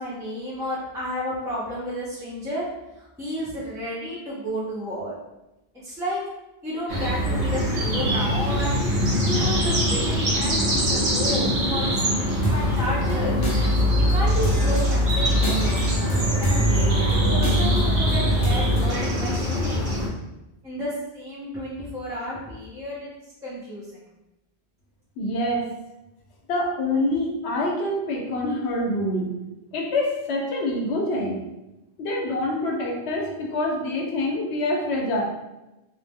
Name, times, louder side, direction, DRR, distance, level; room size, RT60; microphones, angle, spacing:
voice 1, 0.0-2.7 3.0-5.1 5.8-6.2 6.6-8.8 9.2-13.4 13.9-15.8 16.4-16.6 17.3-19.9 20.6-23.1 23.4-24.0, equal, 5° right, -8 dB, 0.5 m, -32 dB
sound 1, 6.9-20.1, equal, 45° right, 0.7 m, -24 dB
sound 2, 12.4-18.9, equal, 45° left, 0.5 m, -22 dB
voice 2, 25.2-25.7 26.5-29.3 29.7-31.4 32.0-35.2, left 1 dB, 80° left, 0 dB, 0.9 m, -26 dB
2.3 x 2.0 x 3.4 m, 0.97 s
omnidirectional pair, 1.1 m